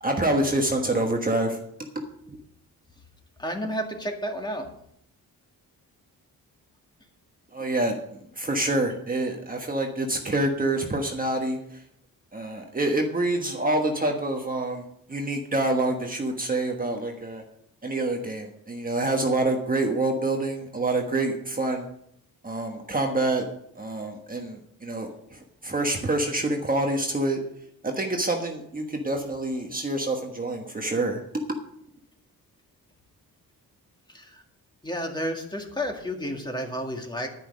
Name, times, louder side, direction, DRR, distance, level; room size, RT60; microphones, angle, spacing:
voice 1, 0.0-1.6 2.3-2.4 7.5-8.0 8.4-11.8 12.3-14.8 15.1-17.4 17.8-21.9 22.4-23.4 23.7-27.4 27.8-31.2, right 2 dB, 25° right, 2 dB, 1.3 m, -27 dB
voice 2, 3.4-4.7 34.1-34.3 34.8-37.3, equal, 10° left, 2 dB, 2.0 m, -31 dB
10.5 x 10.5 x 5.3 m, 0.71 s
wide cardioid pair, 125°, 35 cm